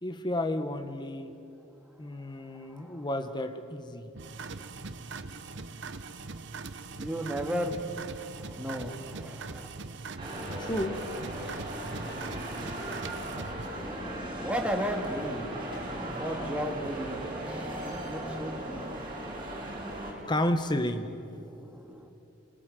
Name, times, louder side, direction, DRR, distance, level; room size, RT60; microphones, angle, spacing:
voice 1, 0.0-1.3 2.0-4.1 10.6-11.0 20.3-21.1, left 1 dB, 20° left, 8 dB, 1.3 m, -31 dB
voice 2, 2.0-3.3 7.0-9.7 13.8-22.1, equal, 5° right, 2 dB, 2.2 m, -37 dB
sound 1, 4.1-13.7, right 4 dB, 60° right, 1.0 m, -41 dB
sound 2, 10.2-20.1, right 1 dB, 25° right, 6.0 m, -37 dB
29.0 x 20.5 x 9.3 m, 2.8 s
head